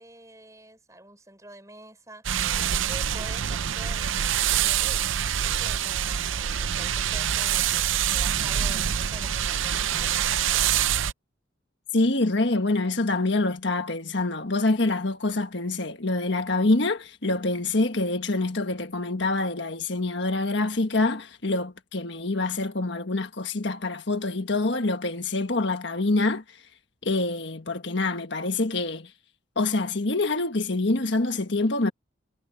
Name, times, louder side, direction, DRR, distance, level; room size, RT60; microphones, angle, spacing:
voice 1, 0.0-4.1 4.4-5.1 5.4-10.1, right 1 dB, 15° right, 5.8 m, -47 dB
sound 1, 2.2-11.1, right 9 dB, 75° right, 0.6 m, -25 dB
voice 2, 11.9-26.4 27.0-29.1 29.5-31.9, left 2 dB, 60° left, 1.5 m, -26 dB
head